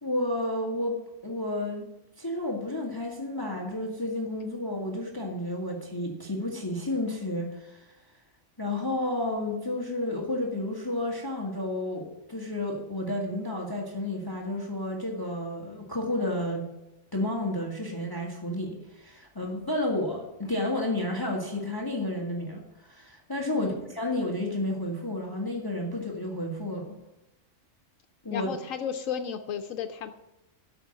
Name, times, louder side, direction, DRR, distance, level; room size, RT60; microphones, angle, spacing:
voice 1, 0.0-1.9 2.2-7.9 8.6-16.7 17.1-27.0 28.2-28.5, left 1 dB, 15° left, 0 dB, 1.5 m, -31 dB
voice 2, 23.5-23.9 28.3-30.1, left 8 dB, 80° left, 7 dB, 1.1 m, -34 dB
12.5 x 6.2 x 7.6 m, 0.95 s
omnidirectional pair, 1.3 m